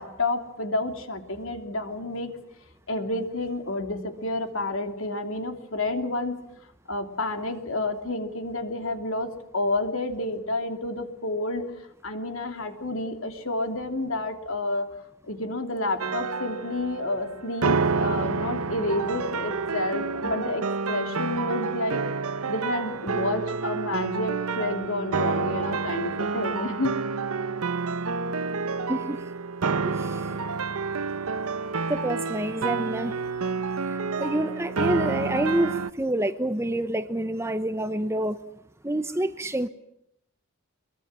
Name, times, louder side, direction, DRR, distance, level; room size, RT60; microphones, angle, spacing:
voice 1, 0.0-2.3 2.9-6.4 6.9-11.6 12.0-14.9 15.2-22.0 22.5-27.0, left 2 dB, 65° left, 6 dB, 3.0 m, -30 dB
sound 1, 16.0-35.9, right 4 dB, 80° right, 0.9 m, -29 dB
voice 2, 28.9-29.2 30.0-30.4 31.9-33.2 33.8-38.4 38.8-39.7, right 1 dB, 10° right, 11 dB, 0.8 m, -27 dB
23.5 x 22.5 x 7.5 m, 0.77 s
head